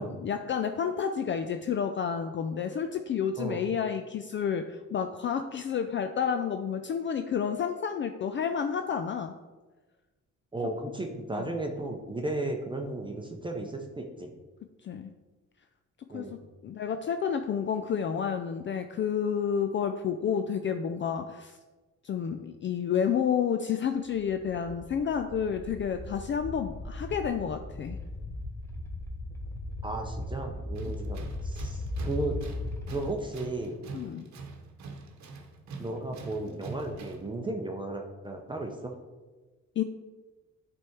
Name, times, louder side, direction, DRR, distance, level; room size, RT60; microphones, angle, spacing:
voice 1, 0.2-9.3 11.3-11.5 14.8-15.1 16.1-16.3 16.6-21.6 22.0-28.0 33.9-34.3 39.8-39.9, left 7 dB, 40° left, 7 dB, 0.4 m, -30 dB
voice 2, 10.5-14.3 16.1-16.4 29.8-32.4 32.9-33.8 35.8-38.9, right 2 dB, 15° right, 2 dB, 0.7 m, -34 dB
sound 1, 24.1-33.1, left 1 dB, 10° left, 1.0 m, -38 dB
Tools, 30.7-37.3, right 4 dB, 65° right, 1.0 m, -45 dB
8.2 x 3.6 x 4.5 m, 1.3 s
cardioid pair, 90°, 30 cm